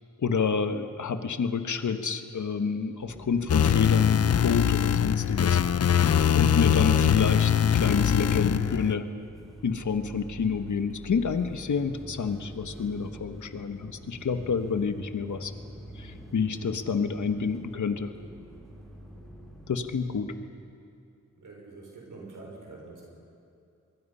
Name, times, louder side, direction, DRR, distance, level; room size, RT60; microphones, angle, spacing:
voice 1, 0.2-5.6 6.3-9.1 9.6-15.5 15.9-18.1 19.7-20.3, left 5 dB, 70° left, 8 dB, 1.4 m, -29 dB
sound 1, 3.0-20.4, equal, ahead, 5.4 m, -45 dB
sound 2, 3.5-9.0, left 9 dB, 55° left, 0.5 m, -22 dB
voice 2, 21.4-23.1, right 3 dB, 80° right, -1 dB, 5.5 m, -45 dB
25.0 x 22.5 x 5.6 m, 2.6 s
wide cardioid pair, 80°, 31 cm